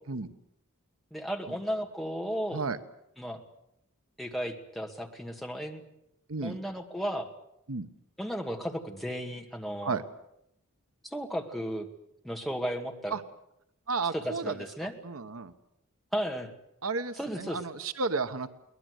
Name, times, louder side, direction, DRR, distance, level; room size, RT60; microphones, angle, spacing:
voice 1, 1.1-2.6 3.2-3.4 4.2-5.8 6.4-7.3 8.2-10.0 11.1-11.9 12.2-13.2 14.1-14.9 16.1-16.5 17.1-17.6, equal, ahead, 2 dB, 2.1 m, -34 dB
voice 2, 13.9-14.5 15.0-15.5 16.8-18.5, right 4 dB, 85° right, 11 dB, 1.1 m, -32 dB
23.0 x 19.0 x 8.1 m, 0.79 s
head